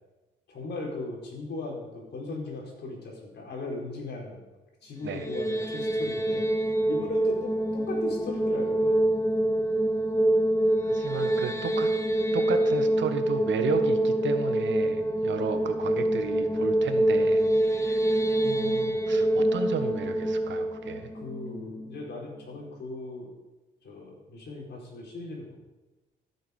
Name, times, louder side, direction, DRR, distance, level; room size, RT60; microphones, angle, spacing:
voice 1, 0.5-4.4 4.8-9.1 15.7-15.9 21.1-23.3 23.8-25.5, left 2 dB, 60° left, -2 dB, 5.0 m, -38 dB
sound 1, 5.0-22.2, right 1 dB, 15° left, 1.2 m, -26 dB
voice 2, 10.8-11.9 12.3-21.1, right 7 dB, 65° right, 8 dB, 1.4 m, -33 dB
15.0 x 8.5 x 5.4 m, 1.1 s
cardioid pair, 90°, 20 cm